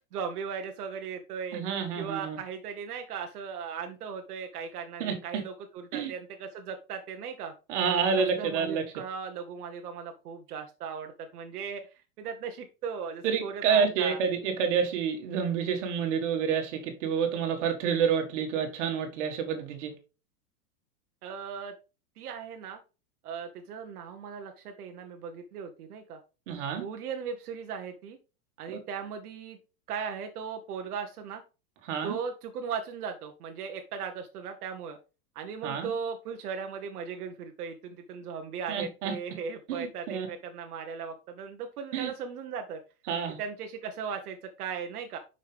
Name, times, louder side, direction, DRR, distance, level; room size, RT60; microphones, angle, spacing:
voice 1, 0.1-1.6 1.9-7.5 8.2-11.8 12.2-14.2 21.2-21.7 22.2-22.8 23.2-26.2 26.8-28.2 28.6-29.6 29.9-31.4 32.0-35.0 35.3-42.8 43.4-45.2, right 6 dB, 80° right, 1.1 m, -37 dB
voice 2, 1.5-2.4 5.0-5.1 5.9-6.1 7.7-8.8 13.2-20.0 26.5-26.8 31.8-32.2 35.6-35.9 38.7-39.1 39.7-40.3 41.9-42.1 43.1-43.4, right 6 dB, 50° right, 1.8 m, -28 dB
6.5 x 5.7 x 3.4 m
supercardioid pair, 170°, 44 cm